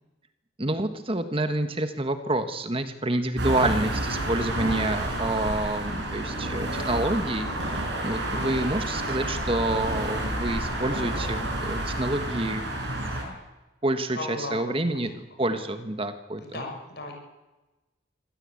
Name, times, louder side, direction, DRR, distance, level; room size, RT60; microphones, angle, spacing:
voice 1, 0.6-13.2 13.8-16.4, right 1 dB, 30° right, 9 dB, 1.4 m, -28 dB
sound 1, 3.4-13.2, right 1 dB, 60° right, 6.3 m, -30 dB
voice 2, 14.1-15.1 15.4-15.6 16.4-17.1, left 2 dB, 55° left, 2 dB, 6.5 m, -36 dB
25.0 x 17.0 x 8.5 m, 1.1 s
head